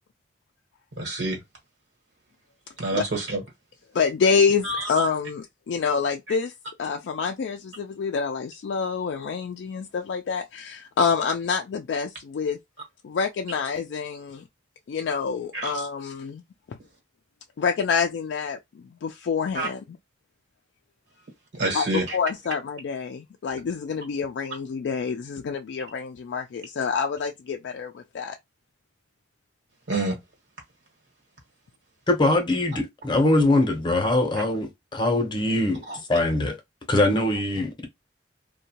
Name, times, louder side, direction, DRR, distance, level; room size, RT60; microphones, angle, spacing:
voice 1, 1.0-1.4 2.8-3.4 4.6-4.9 15.5-15.7 19.5-19.7 21.5-22.2 29.9-30.2 35.9-36.0, right 2 dB, 70° right, 1.1 m, -27 dB
voice 2, 3.9-6.5 6.8-12.6 13.0-14.4 14.9-16.4 16.7-16.8 17.6-19.8 21.7-28.4, left 5 dB, 70° left, 0.3 m, -27 dB
voice 3, 32.1-35.8 36.1-36.6 36.9-37.9, left 2 dB, 25° left, 0.7 m, -22 dB
2.6 x 2.2 x 2.8 m
head